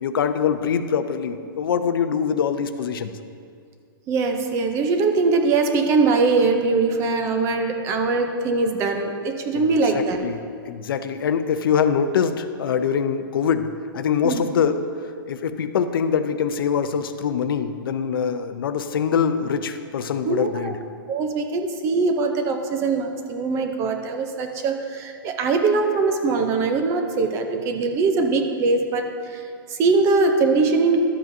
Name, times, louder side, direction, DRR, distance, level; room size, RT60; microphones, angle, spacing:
voice 1, 0.0-3.2 9.5-14.9 15.3-20.8, left 7 dB, 75° left, 10 dB, 0.6 m, -24 dB
voice 2, 4.1-10.2 14.2-14.4 20.2-20.7 21.1-29.0 29.3-29.4 29.7-31.0, right 3 dB, 25° right, 6 dB, 0.6 m, -21 dB
12.5 x 7.5 x 2.7 m, 2.2 s
hypercardioid pair, 155°, 12 cm